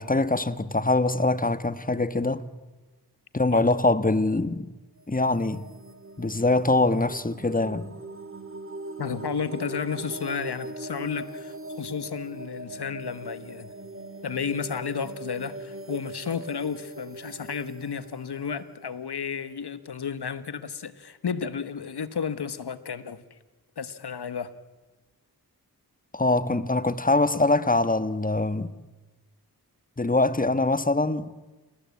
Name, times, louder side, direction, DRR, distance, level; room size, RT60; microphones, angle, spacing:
voice 1, 0.0-2.5 3.3-4.7 5.1-5.7 6.2-7.9 26.1-28.7 30.0-31.3, left 2 dB, 20° left, 1.4 m, -23 dB
sound 1, 5.0-19.6, right 2 dB, 30° right, 2.4 m, -41 dB
voice 2, 9.0-13.7 14.2-23.2 23.8-24.5, left 6 dB, 75° left, 1.5 m, -32 dB
29.0 x 19.0 x 8.5 m
cardioid pair, 45°, 40 cm